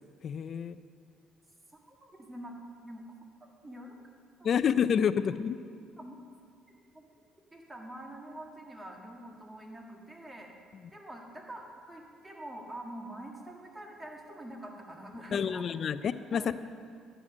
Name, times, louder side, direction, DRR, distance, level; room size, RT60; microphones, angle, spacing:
voice 1, 0.2-0.8 4.4-5.6 15.3-16.6, left 7 dB, 50° left, 14 dB, 0.4 m, -28 dB
voice 2, 1.8-2.6 2.8-3.1 3.4-4.0 4.4-4.6 6.0-6.2 6.9-7.1 7.5-10.5 10.9-15.6 16.3-16.5, right 1 dB, 15° right, 1 dB, 1.7 m, -45 dB
11.0 x 7.7 x 6.3 m, 2.2 s
cardioid pair, 105°, 0 cm